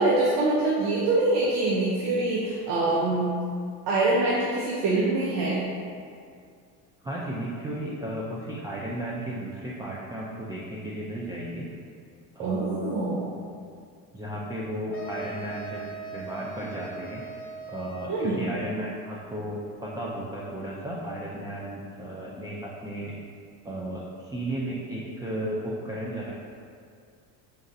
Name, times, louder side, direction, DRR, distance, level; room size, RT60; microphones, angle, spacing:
voice 1, 0.0-3.3 3.9-5.6 12.4-13.3 18.1-18.4, right 2 dB, 60° right, -5 dB, 0.8 m, -24 dB
voice 2, 7.0-11.7 12.3-12.9 14.1-17.2 17.7-23.1 23.6-26.3, right 1 dB, 10° right, -5 dB, 0.4 m, -34 dB
sound 1, 14.9-18.6, right 3 dB, 30° left, 0.7 m, -40 dB
3.9 x 3.9 x 2.6 m, 2.2 s
supercardioid pair, 85°, 46 cm